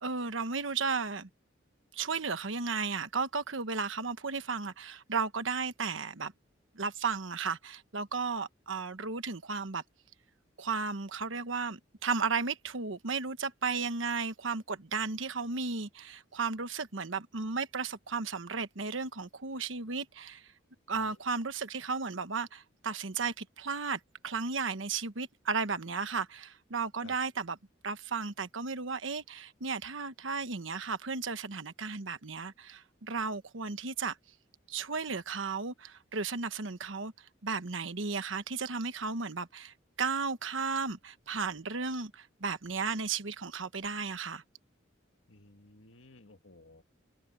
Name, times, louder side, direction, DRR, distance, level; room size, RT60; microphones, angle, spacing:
voice 1, 0.0-1.3 1.9-6.3 6.7-9.8 10.6-20.4 20.9-27.6 27.8-34.2 34.7-37.1 37.4-44.4, right 4 dB, 80° right, 1.2 m, -34 dB
voice 2, 45.3-46.8, left 2 dB, 80° left, 2.1 m, -55 dB
head